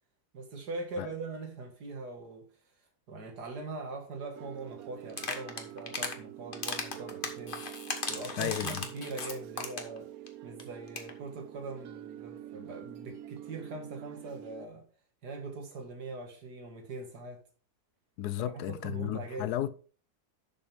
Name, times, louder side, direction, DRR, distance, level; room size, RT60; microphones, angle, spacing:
voice 1, 0.3-2.5 3.1-7.6 8.1-10.1 10.4-14.9 15.2-17.4 18.4-18.5 18.8-19.5, right 3 dB, 90° right, 2.5 m, -41 dB
sound 1, 4.3-14.7, right 13 dB, 70° right, 1.0 m, -46 dB
sound 2, 5.1-6.2 6.5-10.0 10.3-10.4 10.6-10.7 10.9-11.1, left 4 dB, 35° left, 1.4 m, -36 dB
voice 2, 8.3-8.8 18.2-19.7, left 12 dB, 80° left, 1.2 m, -33 dB
11.5 x 6.9 x 3.5 m
omnidirectional pair, 1.7 m